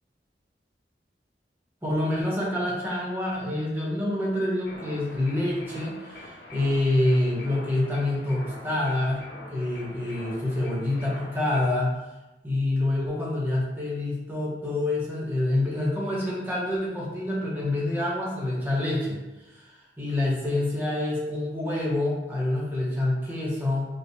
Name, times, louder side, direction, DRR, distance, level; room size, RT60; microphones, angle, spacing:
voice 1, 1.8-11.9 12.4-19.2 19.5-23.9, left 1 dB, 10° right, -6 dB, 1.1 m, -27 dB
sound 1, 4.6-11.7, left 1 dB, 60° left, 0.7 m, -44 dB
5.6 x 2.4 x 3.1 m, 1.0 s
head